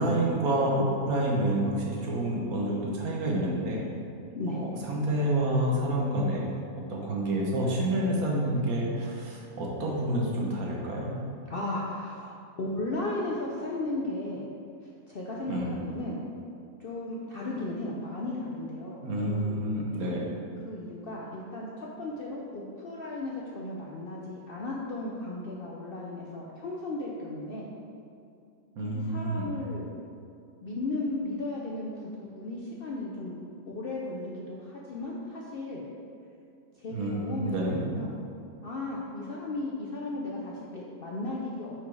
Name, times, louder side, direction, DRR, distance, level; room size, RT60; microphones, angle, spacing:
voice 1, 0.0-3.8 4.5-6.5 6.9-11.1 15.5-15.7 19.0-20.2 28.8-29.5 36.9-37.8, right 1 dB, 75° right, -2 dB, 1.5 m, -28 dB
voice 2, 11.5-14.5 15.1-16.2 16.8-19.6 20.6-27.7 28.8-29.9 30.6-33.4 33.6-35.8 36.8-38.2 38.6-41.7, left 2 dB, 60° left, -3 dB, 0.6 m, -35 dB
4.9 x 4.6 x 4.7 m, 2.5 s
omnidirectional pair, 1.6 m